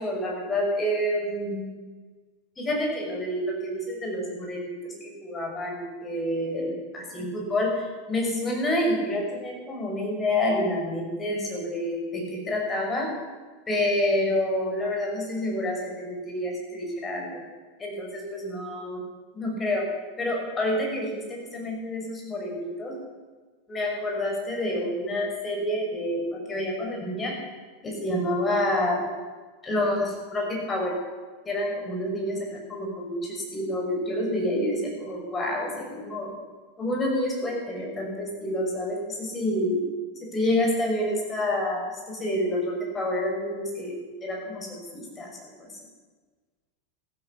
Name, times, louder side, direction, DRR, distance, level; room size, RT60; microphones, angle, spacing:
voice 1, 0.0-1.7 2.6-13.1 13.7-17.4 17.8-19.0 19.3-19.9 20.2-23.0 23.7-27.4 27.8-29.0 29.6-31.0 31.5-36.3 36.8-39.8 40.2-44.0 44.2-45.7, left 1 dB, 20° left, 0 dB, 5.7 m, -28 dB
15.0 x 12.5 x 7.1 m, 1.4 s
figure-of-eight pair, 85°, 0 cm